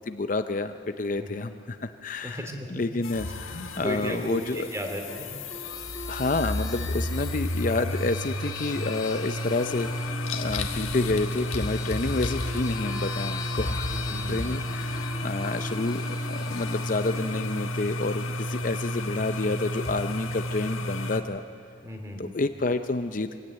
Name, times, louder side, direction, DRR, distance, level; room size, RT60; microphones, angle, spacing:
voice 1, 0.0-2.4 2.7-4.7 6.1-21.4 22.2-23.4, left 3 dB, 40° left, 9 dB, 0.5 m, -29 dB
voice 2, 1.2-1.5 2.2-2.8 3.8-5.4 13.9-14.6 21.8-22.3, equal, 15° right, 3 dB, 2.5 m, -35 dB
sound 1, 3.0-21.2, left 1 dB, 90° left, 1.6 m, -32 dB
sound 2, 5.1-18.3, left 4 dB, 20° left, 1.1 m, -42 dB
24.0 x 16.5 x 9.0 m, 2.8 s
head